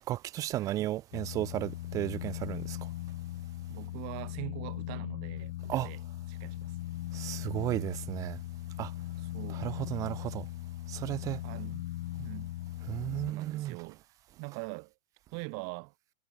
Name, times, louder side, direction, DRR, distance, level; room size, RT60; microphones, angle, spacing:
voice 1, 0.1-2.8 5.7-5.9 7.1-8.4 8.8-8.9 9.5-10.5 10.9-11.4 12.8-13.8, right 14 dB, 10° right, 0.3 m, -34 dB
sound 1, 1.1-13.3, left 15 dB, 55° left, 3.2 m, -39 dB
voice 2, 3.7-6.0 6.4-6.7 9.3-9.7 11.4-11.8 12.2-12.5 13.3-14.0 14.4-14.9 15.3-15.9, right 32 dB, 40° right, 6.0 m, -42 dB
figure-of-eight pair, 115°, 41 cm